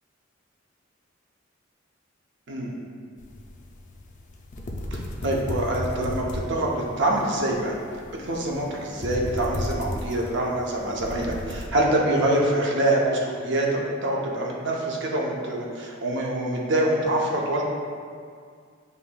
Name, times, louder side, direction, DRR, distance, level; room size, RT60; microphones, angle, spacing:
sound 1, 3.2-11.7, left 1 dB, 40° left, 0.4 m, -35 dB
voice 1, 4.9-7.8 8.2-17.6, right 1 dB, 65° right, -2 dB, 0.7 m, -25 dB
6.6 x 2.8 x 2.2 m, 2.1 s
head